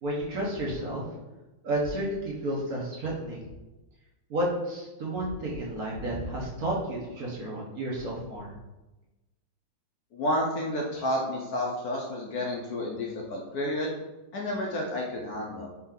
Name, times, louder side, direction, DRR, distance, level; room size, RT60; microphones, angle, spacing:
voice 1, 0.0-1.0 1.6-3.4 4.3-8.5, right 1 dB, 55° right, -4 dB, 1.2 m, -31 dB
voice 2, 10.1-13.9 14.3-15.7, left 1 dB, 65° left, -1 dB, 1.0 m, -30 dB
4.4 x 3.0 x 3.8 m, 1.1 s
omnidirectional pair, 2.1 m